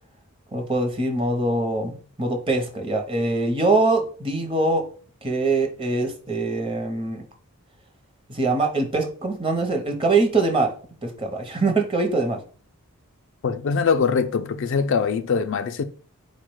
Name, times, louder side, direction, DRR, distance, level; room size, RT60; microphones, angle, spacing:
voice 1, 0.5-4.9 5.2-7.2 8.3-10.7 11.0-12.4, right 3 dB, 25° right, 0.7 m, -23 dB
voice 2, 13.4-15.8, left 5 dB, 60° left, 0.4 m, -22 dB
4.6 x 2.2 x 4.6 m
head